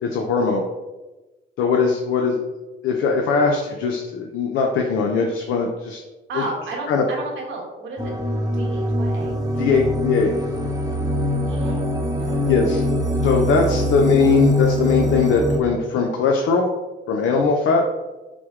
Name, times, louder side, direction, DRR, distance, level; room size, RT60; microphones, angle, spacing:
voice 1, 0.0-0.6 1.6-2.4 2.8-6.0 6.9-7.0 9.6-10.4 12.5-12.8 13.2-16.7 17.1-17.8, left 4 dB, 85° left, 1 dB, 0.5 m, -20 dB
voice 2, 6.3-9.9 11.5-11.8 12.1-12.8 17.6-17.8, right 2 dB, 75° right, 0 dB, 1.2 m, -34 dB
sound 1, 8.0-15.6, left 1 dB, 15° right, 0.7 m, -23 dB
6.0 x 2.1 x 3.5 m, 1.1 s
cardioid pair, 90°, 20 cm